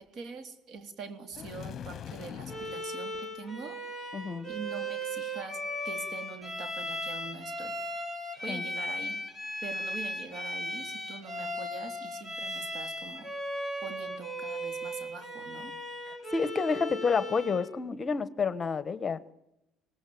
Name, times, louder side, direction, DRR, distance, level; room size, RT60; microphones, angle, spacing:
voice 1, 0.0-3.8 4.5-7.8 8.4-9.2 9.6-13.3 13.8-15.7, right 4 dB, 55° right, 8 dB, 3.6 m, -43 dB
sound 1, 1.3-2.9, left 9 dB, 50° left, 0.9 m, -42 dB
Bowed string instrument, 2.5-17.7, equal, 20° right, 6.1 m, -37 dB
voice 2, 4.1-4.5 8.5-8.6 16.3-19.2, left 5 dB, 30° left, 15 dB, 1.3 m, -29 dB
24.0 x 18.5 x 9.5 m, 0.89 s
cardioid pair, 105°, 0 cm